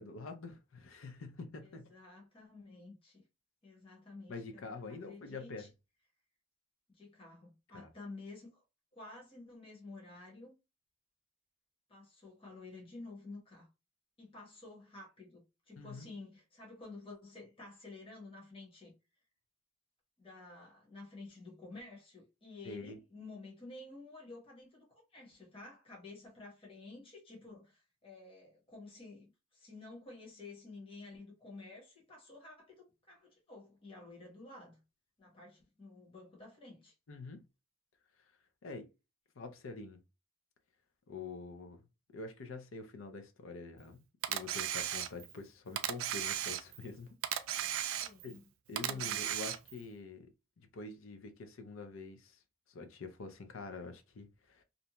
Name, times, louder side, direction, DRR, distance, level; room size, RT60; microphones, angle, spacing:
voice 1, 0.0-1.9 4.3-5.7 7.7-7.9 15.8-16.1 22.6-23.0 37.1-37.4 38.6-38.9 39.4-40.0 41.1-41.8 42.1-44.0 44.3-47.2 47.6-48.4 48.7-50.3 50.6-52.4 52.7-54.6, left 3 dB, 75° left, 0.5 m, -46 dB
voice 2, 1.6-3.2 3.6-5.7 6.9-8.6 8.9-10.5 11.9-13.7 14.2-19.0 20.2-34.8 35.2-36.9 48.0-48.4 48.8-49.1, left 3 dB, 25° left, 1.0 m, -51 dB
Camera, 44.2-45.4 45.8-46.9 47.2-48.4 48.8-49.8, right 11 dB, 75° right, 0.3 m, -36 dB
2.6 x 2.1 x 2.8 m
head